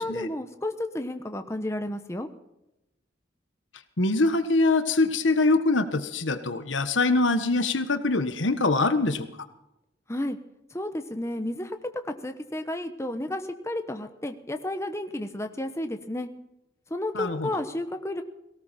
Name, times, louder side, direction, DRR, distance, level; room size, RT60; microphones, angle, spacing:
voice 1, 0.0-2.3 10.1-10.4 10.7-11.8 12.0-16.3 16.9-18.2, left 1 dB, 15° left, 7 dB, 1.0 m, -32 dB
voice 2, 4.0-9.3 17.1-17.5, left 3 dB, 90° left, 10 dB, 1.4 m, -24 dB
18.0 x 18.0 x 4.3 m, 0.89 s
head